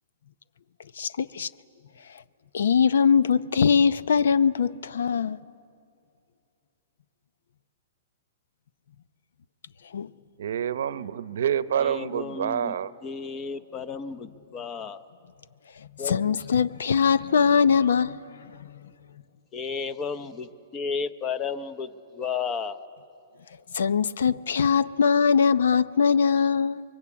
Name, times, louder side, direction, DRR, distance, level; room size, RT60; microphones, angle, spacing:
voice 1, 1.0-1.5 2.5-5.4 9.9-10.1 16.1-18.2 18.6-18.7 23.7-26.8, left 6 dB, 85° left, 0.7 m, -21 dB
voice 2, 10.4-12.9, right 9 dB, 65° right, 0.8 m, -27 dB
voice 3, 11.8-15.1 16.0-16.4 19.5-22.9, left 5 dB, 15° left, 0.7 m, -33 dB
29.0 x 23.0 x 8.6 m
hypercardioid pair, 175°, 0 cm